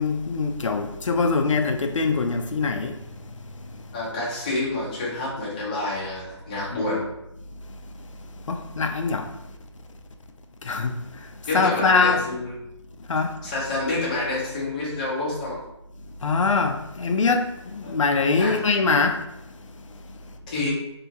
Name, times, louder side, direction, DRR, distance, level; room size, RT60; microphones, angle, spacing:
voice 1, 0.0-2.9 8.5-9.3 10.7-11.0 11.5-12.2 13.1-13.3 16.2-19.2, left 4 dB, 85° left, 0.4 m, -23 dB
voice 2, 3.9-7.1 11.5-12.5 13.4-15.6 17.8-17.9 18.4-18.6 20.5-20.7, left 2 dB, 15° left, 0.5 m, -28 dB
2.7 x 2.4 x 2.7 m
figure-of-eight pair, 165°, 16 cm